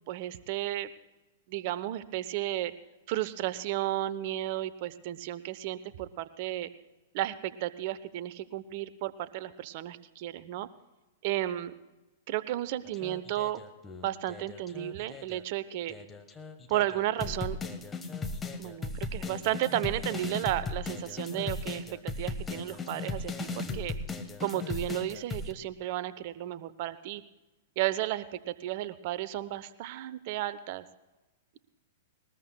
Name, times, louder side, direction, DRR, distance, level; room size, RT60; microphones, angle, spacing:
voice 1, 0.1-0.9 1.5-2.7 3.1-6.7 7.1-10.7 11.2-11.7 12.3-13.6 14.0-15.9 16.7-17.6 18.6-23.9 24.4-27.2 27.8-30.8, right 14 dB, 50° right, 15 dB, 0.8 m, -33 dB
Robot Singing, 12.9-15.4 15.9-25.5, left 3 dB, 15° left, 1.3 m, -37 dB
21.0 x 20.0 x 2.3 m, 1.1 s
figure-of-eight pair, 105°, 0 cm